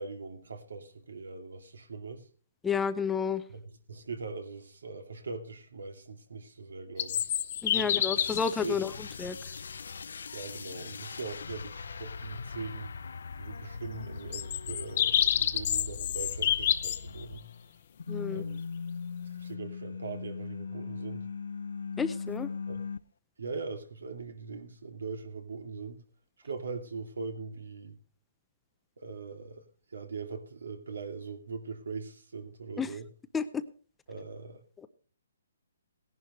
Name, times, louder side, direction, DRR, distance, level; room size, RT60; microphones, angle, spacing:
voice 1, 0.0-2.3 3.5-3.6 3.9-7.3 7.7-8.2 8.6-8.8 10.3-12.9 13.4-17.5 18.3-18.6 19.3-21.3 22.7-22.8 23.4-26.0 26.4-28.0 29.0-29.6 29.9-33.1 34.1-34.6, right 4 dB, 80° right, 2.6 m, -41 dB
voice 2, 2.6-3.4 7.6-8.9 9.2-9.4 18.1-18.4 22.0-22.5 32.8-33.0 33.3-33.6, left 6 dB, 5° left, 0.5 m, -31 dB
sound 1, 7.0-8.5 9.6-9.7 14.3-17.0, left 10 dB, 40° left, 0.8 m, -28 dB
sound 2, 8.2-17.7 18.0-23.0, left 5 dB, 75° left, 0.6 m, -40 dB
17.5 x 11.0 x 3.1 m
hypercardioid pair, 160°, 0 cm